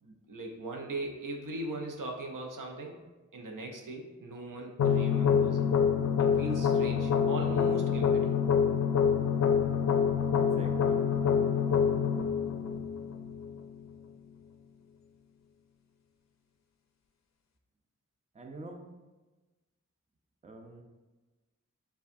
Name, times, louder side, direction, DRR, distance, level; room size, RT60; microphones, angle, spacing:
voice 1, 0.0-3.0 3.3-5.7 6.3-8.3, right 2 dB, 90° right, 1 dB, 0.7 m, -39 dB
sound 1, 4.8-13.8, left 7 dB, 60° left, 0.4 m, -26 dB
voice 2, 10.4-11.0 18.3-18.8 20.4-20.8, right 2 dB, 25° right, 3 dB, 0.5 m, -45 dB
6.8 x 2.3 x 2.6 m, 1.2 s
wide cardioid pair, 80°, 31 cm